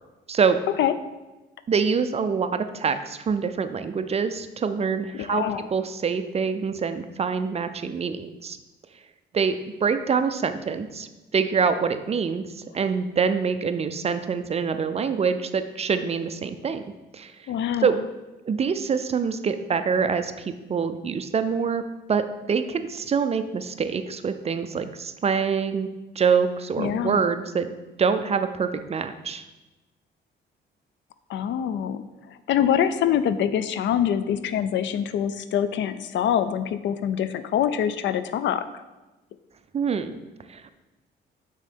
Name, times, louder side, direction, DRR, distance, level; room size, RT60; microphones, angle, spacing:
voice 1, 1.7-5.4 5.7-8.6 9.3-11.1 11.3-12.5 12.7-16.8 17.1-17.3 17.8-18.0 18.5-21.8 22.1-25.9 26.2-29.4 39.7-40.2 40.5-40.7, right 6 dB, 30° right, 10 dB, 0.4 m, -25 dB
voice 2, 5.1-5.7 17.5-17.9 26.8-27.3 31.3-32.0 32.5-38.6, left 9 dB, 65° left, 13 dB, 0.4 m, -24 dB
5.4 x 3.7 x 5.1 m, 1.1 s
cardioid pair, 90°, 20 cm